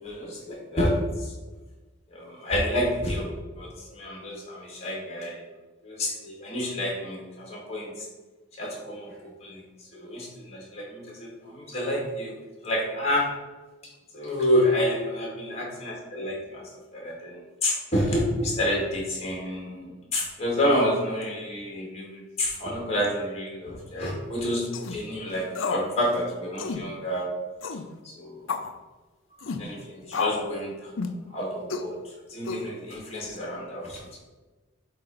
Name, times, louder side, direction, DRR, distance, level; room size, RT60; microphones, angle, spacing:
voice 1, 0.0-1.3 2.1-3.3 3.6-5.4 5.8-8.1 8.6-9.6 9.9-12.3 12.6-13.3 14.1-16.6 16.9-27.3 28.0-28.4 29.6-30.9 31.3-32.0 32.3-34.2, left 1 dB, 30° left, -3 dB, 2.2 m, -29 dB
sound 1, 24.7-25.0 25.5-25.9 26.1-26.2 26.6-26.8 27.6-27.9 28.5-28.7 29.4-29.6 30.1-30.5 31.0-31.2 31.7-31.9 32.5-32.9, left 4 dB, 80° left, 0.6 m, -30 dB
8.0 x 3.0 x 5.4 m, 1.2 s
head